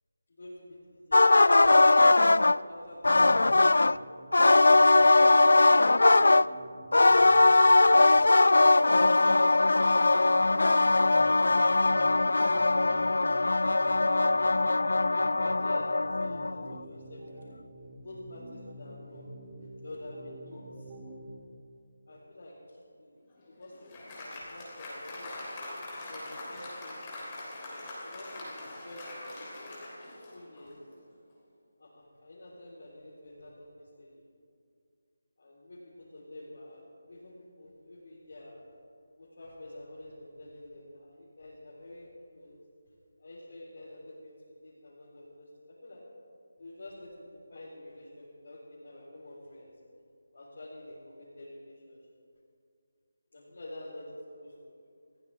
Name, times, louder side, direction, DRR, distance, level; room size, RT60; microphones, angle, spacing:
voice 1, 0.4-4.3 5.1-6.5 7.7-8.0 8.4-9.4 10.0-12.4 15.2-17.5 18.0-19.3 19.8-20.9 22.1-23.2 23.5-25.4 26.1-29.4 30.3-30.8 31.8-34.3 35.4-38.6 39.2-42.6 43.2-44.3 44.6-46.0 46.6-49.7 50.3-52.0 53.3-54.0 54.4-54.5, left 1 dB, 55° left, -8 dB, 4.0 m, -48 dB
sound 1, 1.1-2.6 3.0-4.0 4.3-6.4 6.9-16.7, left 2 dB, 80° left, 0.3 m, -21 dB
sound 2, 3.1-21.3, right 1 dB, 30° right, 2.4 m, -49 dB
Applause, 23.3-30.8, left 2 dB, 15° left, 3.2 m, -43 dB
21.5 x 15.0 x 3.5 m, 2.4 s
figure-of-eight pair, 170°, 0 cm